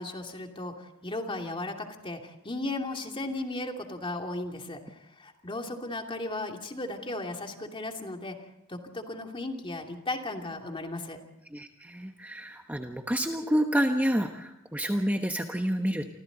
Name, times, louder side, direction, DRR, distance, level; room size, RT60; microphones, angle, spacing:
voice 1, 0.0-8.4 8.7-11.2, left 2 dB, 25° left, 3 dB, 2.7 m, -36 dB
voice 2, 11.5-16.1, equal, 10° right, 4 dB, 1.1 m, -29 dB
29.0 x 25.5 x 4.0 m, 0.88 s
head